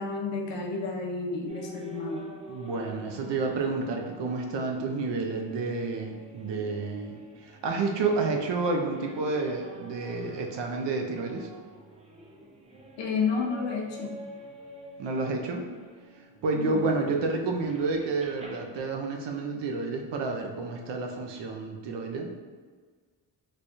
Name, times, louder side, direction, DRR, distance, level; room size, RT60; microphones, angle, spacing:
voice 1, 0.0-2.3 13.0-14.2 16.5-16.9, left 4 dB, 70° left, 1 dB, 0.7 m, -31 dB
sound 1, 1.5-18.8, equal, 15° right, 0.4 m, -47 dB
voice 2, 2.5-7.2 7.4-11.5 15.0-15.6 16.4-22.3, right 3 dB, 65° right, 2 dB, 0.6 m, -30 dB
3.3 x 2.2 x 4.0 m, 1.5 s
cardioid pair, 140°, 46 cm